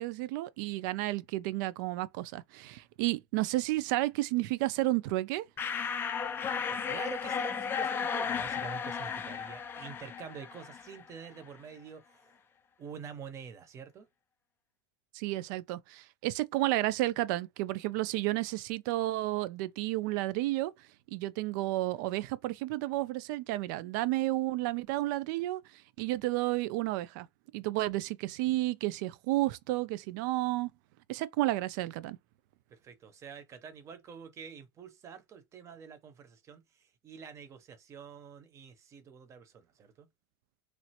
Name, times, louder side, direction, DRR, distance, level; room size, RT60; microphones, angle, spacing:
voice 1, 0.0-5.4 15.1-20.7 21.1-25.6 26.0-27.3 27.5-30.7 31.1-32.2, right 17 dB, 60° right, 0.4 m, -31 dB
sound 1, 5.6-11.1, left 6 dB, 20° left, 0.3 m, -34 dB
voice 2, 6.7-12.4 12.8-14.1 32.7-40.1, right 6 dB, 25° right, 0.7 m, -47 dB
3.1 x 2.4 x 2.8 m
supercardioid pair, 145°, 11 cm